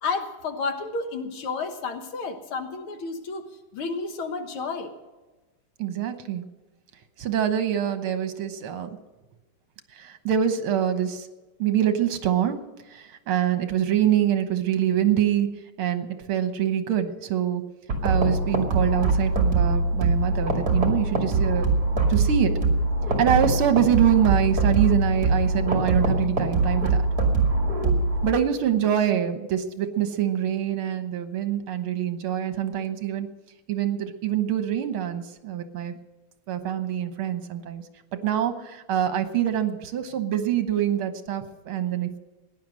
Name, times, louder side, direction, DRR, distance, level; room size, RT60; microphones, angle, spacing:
voice 1, 0.0-3.5 3.7-4.9, left 4 dB, 70° left, 6 dB, 2.2 m, -31 dB
voice 2, 5.8-6.4 7.2-8.9 10.0-11.3 11.6-12.6 12.9-15.5 15.8-17.6 18.0-21.7 22.1-22.5 23.2-27.0 28.2-33.3 33.7-35.9 36.5-37.8 38.2-42.2, right 10 dB, 75° right, 8 dB, 2.0 m, -25 dB
sound 1, 17.9-28.3, right 2 dB, 45° right, 3.0 m, -23 dB
17.0 x 10.5 x 6.3 m, 1.2 s
omnidirectional pair, 2.4 m